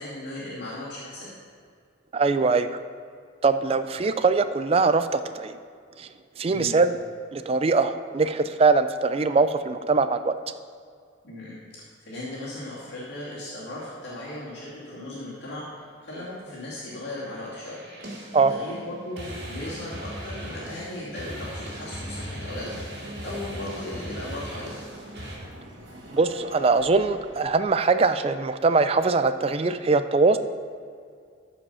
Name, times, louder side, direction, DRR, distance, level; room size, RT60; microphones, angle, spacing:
voice 1, 0.0-1.3 6.5-6.8 11.2-11.6 12.1-15.6 16.0-18.2 18.5-24.7, left 1 dB, 60° left, -8 dB, 2.5 m, -37 dB
voice 2, 2.1-2.8 3.4-5.6 6.0-6.1 6.4-7.0 7.3-10.3 18.3-18.5 26.1-30.4, right 4 dB, 30° right, 11 dB, 0.3 m, -22 dB
sound 1, 17.0-25.4, equal, 55° right, 2.3 m, -38 dB
sound 2, 21.8-27.4, right 1 dB, 70° right, 1.9 m, -45 dB
13.5 x 5.1 x 5.5 m, 2.2 s
head